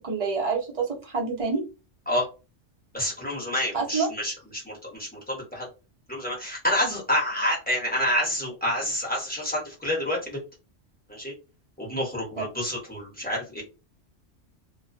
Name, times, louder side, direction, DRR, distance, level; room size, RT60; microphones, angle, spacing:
voice 1, 0.0-1.6 3.7-4.1 12.4-12.5, right 4 dB, 35° right, -1 dB, 0.7 m, -27 dB
voice 2, 2.9-5.7 6.1-10.4 11.1-11.3 11.8-13.6, left 1 dB, 10° left, -4 dB, 0.9 m, -28 dB
2.3 x 2.2 x 2.5 m, 0.30 s
omnidirectional pair, 1.2 m